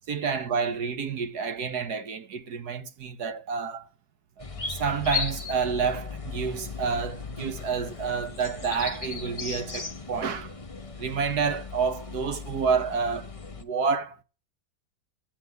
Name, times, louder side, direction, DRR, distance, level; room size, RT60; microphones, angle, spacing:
voice 1, 0.1-3.9 4.7-10.5 11.0-14.2, right 5 dB, 60° right, 1.4 m, -29 dB
sound 1, 4.4-13.6, left 5 dB, 25° left, 0.8 m, -36 dB
15.5 x 8.8 x 9.4 m
omnidirectional pair, 2.0 m